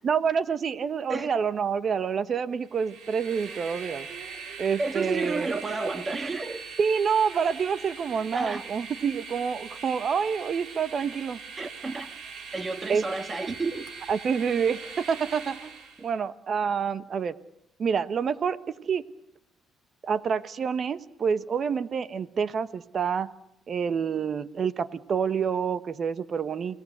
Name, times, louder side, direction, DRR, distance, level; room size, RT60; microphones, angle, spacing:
voice 1, 0.0-4.1 4.6-5.5 6.8-11.4 12.9-13.0 14.1-15.7 16.0-17.3 17.8-19.0 20.0-23.3 23.7-26.8, right 6 dB, 50° right, 14 dB, 1.1 m, -27 dB
Train, 2.6-16.1, right 5 dB, 75° right, 3.6 m, -41 dB
voice 2, 4.8-6.7 8.3-8.6 11.6-12.1 12.5-13.9, right 3 dB, 25° right, 10 dB, 1.8 m, -31 dB
29.5 x 18.0 x 8.0 m, 0.82 s
cardioid pair, 95°, 0 cm